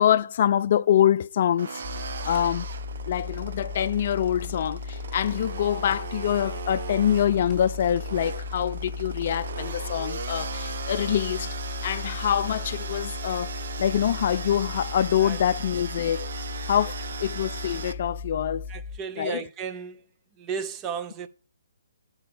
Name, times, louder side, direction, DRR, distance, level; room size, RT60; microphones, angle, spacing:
voice 1, 0.0-1.8 2.2-2.7 3.1-11.5 11.8-13.5 13.8-16.3 16.7-18.6 19.2-19.4, left 10 dB, 50° left, 0.4 m, -25 dB
sound 1, 1.6-17.9, right 6 dB, 60° right, 0.9 m, -38 dB
sound 2, 1.8-19.0, left 5 dB, ahead, 1.4 m, -36 dB
sound 3, 1.9-2.8 5.0-5.7 5.9-6.4 6.9-7.9, left 5 dB, 15° left, 1.5 m, -53 dB
voice 2, 18.7-20.0 20.3-21.3, right 6 dB, 20° right, 0.7 m, -34 dB
9.4 x 4.7 x 6.9 m
hypercardioid pair, 155°, 0 cm